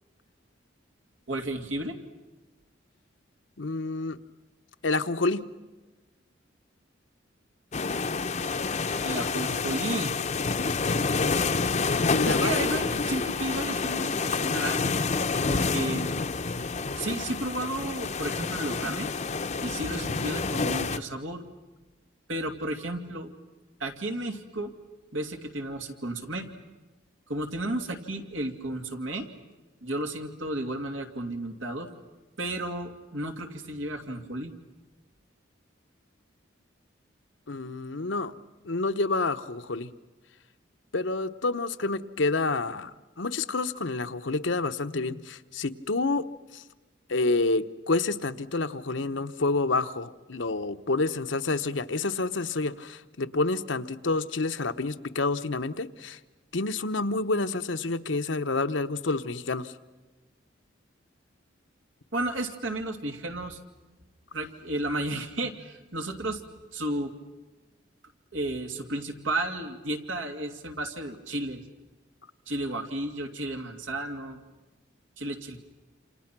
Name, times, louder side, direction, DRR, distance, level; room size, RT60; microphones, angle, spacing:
voice 1, 1.3-2.0 9.0-10.1 12.3-14.9 15.5-16.1 17.0-19.1 19.6-21.4 22.3-23.3 23.8-24.7 25.1-26.5 27.3-29.3 29.8-31.9 32.4-34.5 62.1-63.6 64.3-66.4 66.7-67.1 68.3-71.6 72.5-74.4 75.2-75.6, right 1 dB, 85° right, 4 dB, 2.6 m, -33 dB
voice 2, 3.6-4.2 4.8-5.4 12.0-12.5 37.5-38.3 38.6-39.9 40.9-46.2 46.5-46.6 47.1-56.2 56.5-59.7, left 3 dB, 75° left, 9 dB, 1.0 m, -28 dB
sound 1, 7.7-21.0, left 4 dB, 35° left, 0.7 m, -28 dB
28.5 x 27.5 x 6.1 m, 1.2 s
head